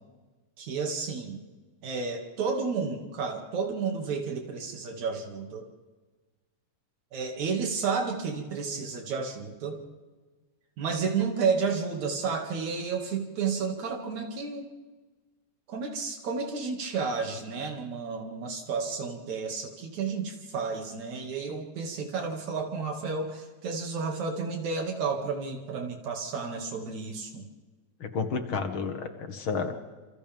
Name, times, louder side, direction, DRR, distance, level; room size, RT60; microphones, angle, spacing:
voice 1, 0.6-1.4 1.8-5.7 7.1-9.8 10.8-14.7 15.7-27.5, right 5 dB, 75° right, 2 dB, 3.7 m, -31 dB
voice 2, 28.0-29.8, left 5 dB, 50° left, 6 dB, 2.3 m, -31 dB
28.5 x 27.5 x 3.6 m, 1.3 s
omnidirectional pair, 3.3 m